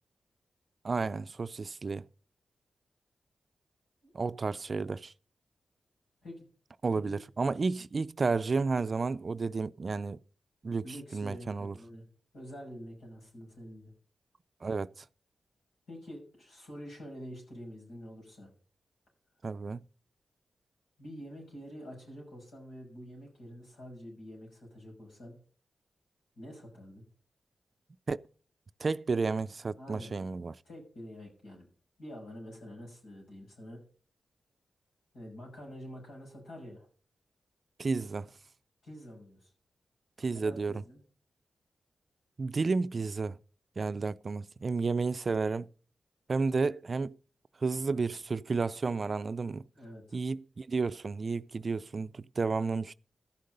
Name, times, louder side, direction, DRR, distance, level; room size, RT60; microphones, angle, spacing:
voice 1, 0.8-2.0 4.1-5.1 6.8-10.2 10.6-10.8 11.1-11.7 14.6-14.9 19.4-19.9 28.1-28.2 28.8-30.5 37.8-38.3 40.2-40.8 42.4-43.4 43.8-45.7 46.3-47.2 47.6-49.6 50.1-52.9, right 4 dB, 50° right, 0.4 m, -31 dB
voice 2, 10.8-12.0 12.3-13.9 15.9-18.5 21.0-25.4 26.4-27.0 29.7-30.2 30.6-31.7 32.0-33.8 35.1-36.9 38.8-39.5 40.3-41.0 49.7-50.2, equal, 85° left, 6.2 m, -47 dB
13.5 x 6.5 x 5.4 m
cardioid pair, 50°, 0 cm